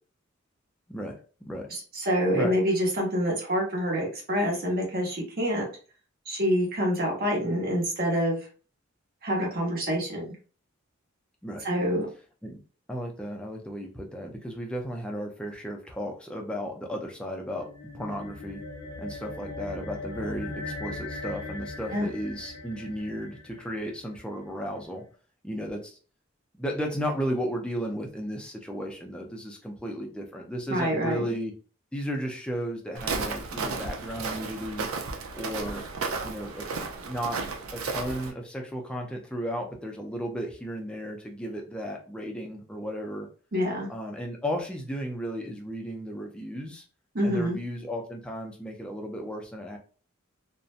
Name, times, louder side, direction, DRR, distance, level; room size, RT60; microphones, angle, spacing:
voice 1, 1.7-5.7 6.2-8.5 9.2-10.3 11.6-12.1 21.9-22.1 30.7-31.3 43.5-43.9 47.1-47.6, equal, 45° right, -2 dB, 1.1 m, -26 dB
voice 2, 12.9-17.7 17.9-18.6 19.0-25.0 25.4-26.0 26.6-31.5 31.9-34.9 35.3-35.8 36.2-36.6 37.0-37.4 37.7-43.3 43.9-46.8 47.2-49.8, equal, 5° left, 1 dB, 0.4 m, -34 dB
sound 1, 17.5-24.2, left 2 dB, 80° left, 0.7 m, -39 dB
Walk footsteps, 32.9-38.3, right 4 dB, 80° right, 0.5 m, -33 dB
2.6 x 2.1 x 2.4 m, 0.38 s
head